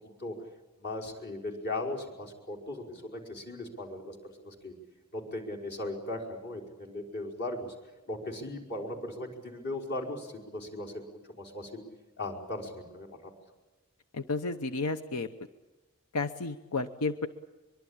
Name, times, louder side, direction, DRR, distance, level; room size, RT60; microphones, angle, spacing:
voice 1, 0.8-4.7 5.1-7.7 8.1-11.8 12.2-13.3, left 2 dB, 50° left, 0 dB, 5.1 m, -38 dB
voice 2, 14.1-15.3 16.1-17.3, left 3 dB, 90° left, 9 dB, 0.9 m, -32 dB
23.5 x 23.5 x 8.8 m, 1.1 s
head